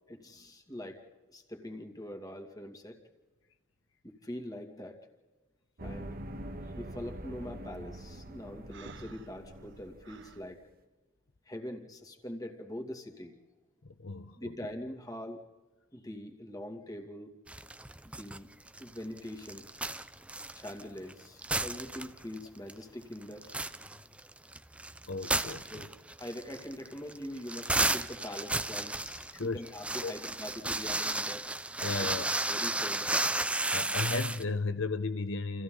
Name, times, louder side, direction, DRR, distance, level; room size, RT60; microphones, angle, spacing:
voice 1, 0.1-1.0 1.3-3.0 4.0-5.0 5.8-6.2 6.7-10.6 11.5-13.4 14.4-15.4 15.9-17.4 18.0-18.5 18.8-19.7 20.5-23.5 25.7-25.9 26.2-31.5 32.5-33.4, left 1 dB, 20° left, 4 dB, 2.6 m, -43 dB
sound 1, 5.8-10.6, right 1 dB, 50° right, 1.5 m, -44 dB
Breathing, 8.7-10.4, right 4 dB, 65° right, 1.1 m, -51 dB
voice 2, 13.8-14.7 25.1-25.8 29.3-29.6 30.0-30.1 31.8-32.3 33.7-35.6, left 3 dB, 70° left, 10 dB, 0.9 m, -35 dB
sound 2, 17.5-18.4 18.7-21.1 21.4-22.4 22.7-22.8 23.2-34.4, right 2 dB, 5° right, 0.6 m, -33 dB
30.0 x 28.5 x 4.0 m, 1.2 s
head